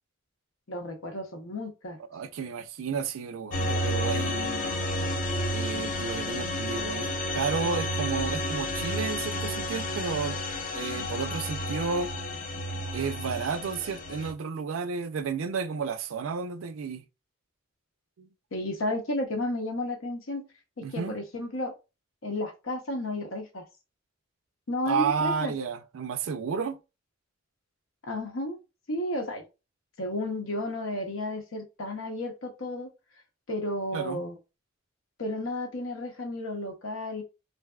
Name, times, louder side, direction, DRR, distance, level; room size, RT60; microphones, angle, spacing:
voice 1, 0.7-2.0 18.5-20.4 20.9-21.7 22.2-23.6 24.7-25.5 28.0-28.6 28.9-29.4 30.0-32.9 33.5-34.4 35.2-37.2, left 1 dB, 85° left, 0.8 m, -32 dB
voice 2, 2.1-4.8 5.5-10.4 10.7-12.1 12.9-17.0 18.2-18.3 20.8-21.2 24.9-26.8 33.9-34.2, right 5 dB, 90° right, 0.4 m, -32 dB
sound 1, 3.5-14.3, left 1 dB, 40° left, 0.5 m, -31 dB
3.4 x 2.6 x 2.3 m
head